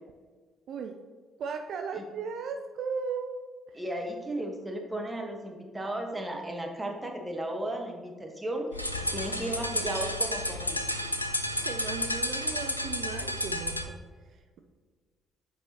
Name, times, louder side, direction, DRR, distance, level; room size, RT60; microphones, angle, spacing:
voice 1, 1.4-3.3 11.6-14.0 14.3-14.6, right 5 dB, 55° right, 5 dB, 0.4 m, -36 dB
voice 2, 3.7-8.8 9.1-10.8, right 1 dB, 10° right, 1 dB, 1.3 m, -35 dB
sound 1, 8.7-13.9, left 1 dB, 90° left, 0.3 m, -31 dB
9.3 x 4.7 x 2.9 m, 1.5 s
figure-of-eight pair, 45°, 0 cm